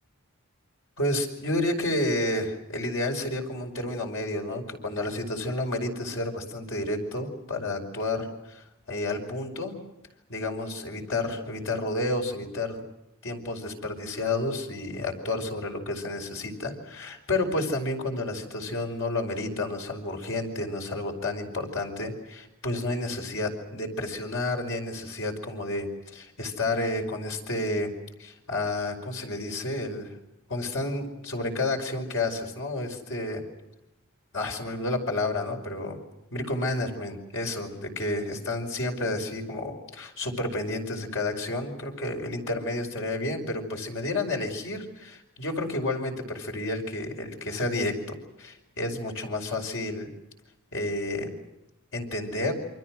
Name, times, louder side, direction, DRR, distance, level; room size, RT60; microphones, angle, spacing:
voice 1, 1.0-9.7 10.3-12.8 13.2-27.9 28.2-30.2 30.5-33.4 34.3-36.0 36.3-50.1 50.7-51.3 51.9-52.5, left 2 dB, 65° left, 3 dB, 5.3 m, -30 dB
28.5 x 25.5 x 6.3 m, 0.93 s
head